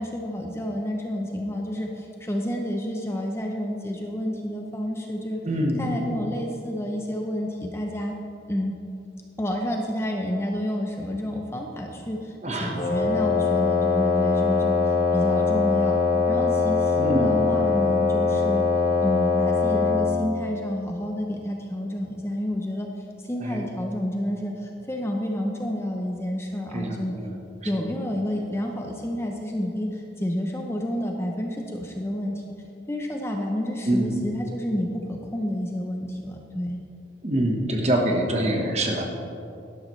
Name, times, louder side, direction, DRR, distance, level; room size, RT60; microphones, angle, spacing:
voice 1, 0.0-5.4 5.8-8.1 8.5-8.7 9.4-16.0 16.3-18.7 19.0-22.9 23.2-27.1 27.6-32.4 32.9-36.8, equal, 15° left, 1 dB, 0.6 m, -29 dB
voice 2, 5.4-5.9 12.4-12.8 17.0-17.3 23.4-23.7 26.7-27.3 27.7-27.8 33.9-34.2 37.2-39.0, right 1 dB, 35° right, 1 dB, 1.2 m, -25 dB
Wind instrument woodwind instrument, 12.7-20.2, left 4 dB, 30° left, 2.3 m, -22 dB
11.5 x 11.5 x 3.2 m, 2.6 s
head